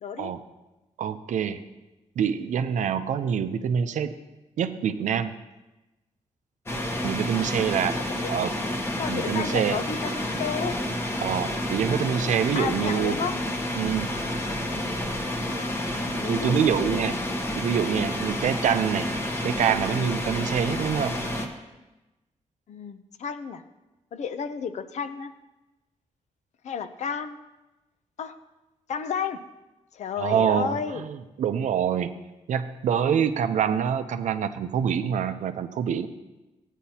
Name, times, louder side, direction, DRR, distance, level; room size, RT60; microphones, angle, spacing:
voice 1, 0.0-0.3 7.9-8.4 9.0-10.8 12.5-13.4 16.2-17.0 22.7-23.6 24.1-25.3 26.6-27.4 28.2-28.3 28.9-29.4 29.9-31.0 33.0-33.2, left 7 dB, 70° left, 11 dB, 0.6 m, -32 dB
voice 2, 1.0-1.6 2.2-4.1 4.6-5.3 7.0-8.0 8.3-8.5 9.1-9.8 11.2-13.2 13.8-14.1 16.2-17.1 17.6-19.1 19.4-21.2 30.2-32.1 32.5-36.1, right 8 dB, 85° right, 10 dB, 0.6 m, -25 dB
sound 1, 6.7-21.5, left 1 dB, 20° left, 0.9 m, -30 dB
15.0 x 9.1 x 2.8 m, 1.1 s
wide cardioid pair, 160°, 12 cm